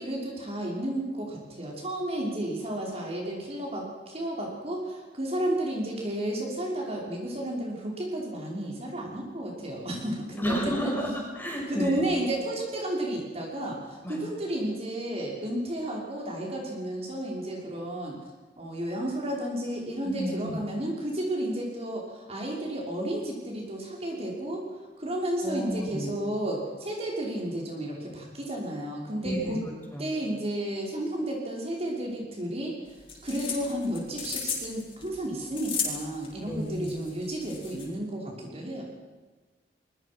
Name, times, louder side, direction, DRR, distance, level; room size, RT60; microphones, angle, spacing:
voice 1, 0.0-10.9 11.4-18.2 18.6-24.7 25.0-29.6 30.0-32.7 33.2-38.8, right 1 dB, 35° right, -2 dB, 5.8 m, -32 dB
voice 2, 10.4-12.0 14.0-14.2 20.0-20.6 25.4-26.1 29.2-30.1 36.4-36.9, equal, 10° left, -1 dB, 6.9 m, -32 dB
sound 1, 32.9-37.9, left 5 dB, 30° left, 6.6 m, -35 dB
24.0 x 22.5 x 6.2 m, 1.3 s
head